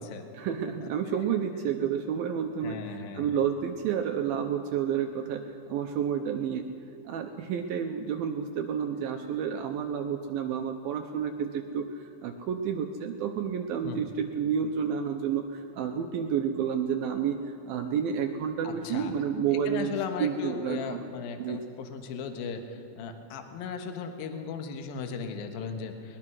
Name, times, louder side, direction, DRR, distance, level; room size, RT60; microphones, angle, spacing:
voice 1, 0.3-6.6 7.1-21.0 21.4-21.6, right 7 dB, 80° right, 5 dB, 2.2 m, -30 dB
voice 2, 2.6-3.3 13.8-14.0 18.6-19.1 19.7-26.2, left 6 dB, 65° left, 6 dB, 2.9 m, -37 dB
21.5 x 20.5 x 6.2 m, 2.5 s
omnidirectional pair, 5.1 m